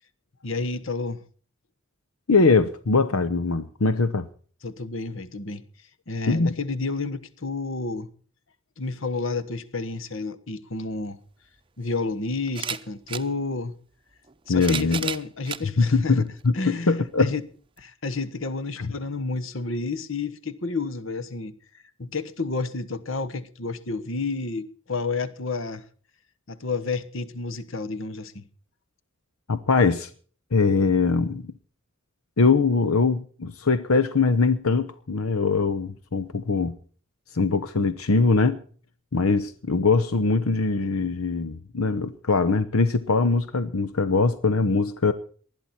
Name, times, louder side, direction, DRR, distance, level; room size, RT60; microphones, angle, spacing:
voice 1, 0.4-1.2 4.6-5.6 6.1-8.1 8.8-11.2 11.8-13.7 14.5-16.3 16.5-17.4 17.8-21.5 22.0-25.8 26.5-28.4, left 3 dB, 65° left, 1.4 m, -30 dB
voice 2, 2.3-4.3 6.3-6.5 14.5-15.1 15.8-17.3 18.8-18.9 29.5-30.1 30.5-31.4 32.4-36.8 37.3-38.6 39.1-45.1, left 4 dB, 90° left, 0.9 m, -22 dB
sound 1, 11.1-11.2 12.5-13.3 14.3-15.7 16.4-16.5 17.8-17.9, right 7 dB, 25° right, 0.7 m, -32 dB
20.0 x 12.5 x 4.3 m
head